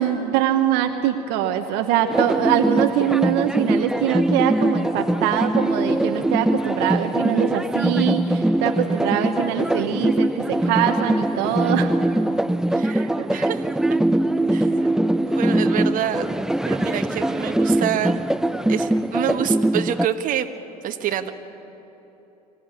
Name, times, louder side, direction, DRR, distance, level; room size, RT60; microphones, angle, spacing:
voice 1, 0.0-11.9, right 10 dB, 55° right, 6 dB, 1.3 m, -23 dB
sound 1, 2.1-20.1, right 1 dB, 5° right, 0.5 m, -22 dB
voice 2, 12.7-14.0 14.5-14.7 15.3-16.3 16.7-18.3 18.7-20.5 20.8-21.3, right 10 dB, 40° right, 7 dB, 1.5 m, -27 dB
25.0 x 16.0 x 9.9 m, 3.0 s
hypercardioid pair, 80°, 21 cm